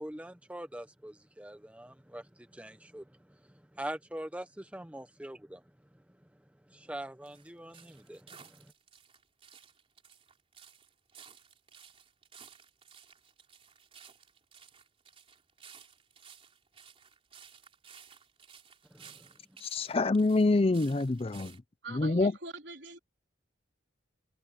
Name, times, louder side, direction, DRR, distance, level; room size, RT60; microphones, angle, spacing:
voice 1, 0.0-5.6 6.7-8.7 18.9-19.3, right 1 dB, 5° right, 0.8 m, -44 dB
sound 1, 7.3-21.6, right 7 dB, 30° right, 3.7 m, -56 dB
voice 2, 19.6-21.6 21.9-22.3, left 2 dB, 30° left, 0.5 m, -26 dB
voice 3, 21.8-23.0, right 2 dB, 65° right, 3.8 m, -43 dB
head